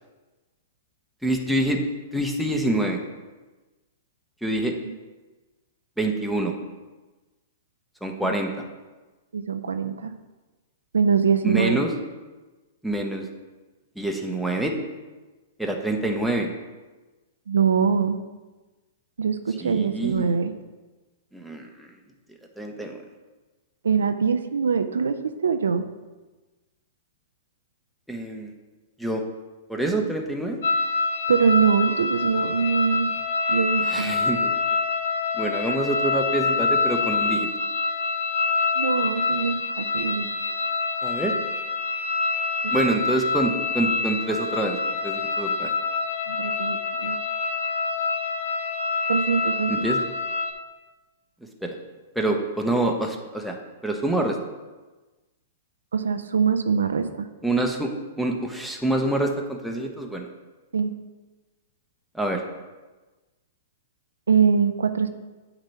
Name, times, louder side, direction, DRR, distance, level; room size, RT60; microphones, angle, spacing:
voice 1, 1.2-1.8 2.1-3.0 4.4-4.7 6.0-6.5 8.0-8.5 11.4-11.9 12.8-13.2 14.0-14.7 15.6-16.5 19.6-20.4 21.3-21.9 22.6-23.0 28.1-28.5 29.0-29.2 29.7-30.6 33.8-34.5 35.4-37.5 41.0-41.4 42.7-44.8 45.0-45.7 49.7-50.0 51.6-51.7 52.2-53.6 53.8-54.4 57.4-60.3 62.1-62.4, right 1 dB, ahead, 1 dB, 0.9 m, -26 dB
voice 2, 9.3-10.1 10.9-11.8 17.5-18.2 19.2-20.5 23.8-25.2 25.4-25.9 31.3-33.1 33.5-34.4 38.8-40.3 42.6-42.7 46.3-47.2 49.1-49.7 55.9-57.3 60.7-60.9 64.3-65.1, right 6 dB, 80° right, 8 dB, 0.4 m, -23 dB
sound 1, 30.6-50.5, left 4 dB, 65° left, 0.9 m, -26 dB
8.8 x 3.0 x 5.6 m, 1.2 s
hypercardioid pair, 110°, 0 cm